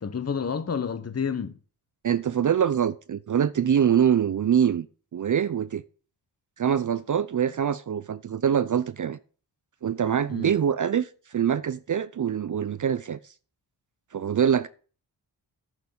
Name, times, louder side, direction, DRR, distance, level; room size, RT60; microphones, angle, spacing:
voice 1, 0.0-1.6 10.3-10.5, left 6 dB, 30° left, 1.0 m, -29 dB
voice 2, 2.0-4.9 5.1-5.8 6.6-9.2 9.8-13.3 14.1-14.7, right 8 dB, 40° right, 0.5 m, -24 dB
9.8 x 4.0 x 6.9 m
cardioid pair, 50°, 47 cm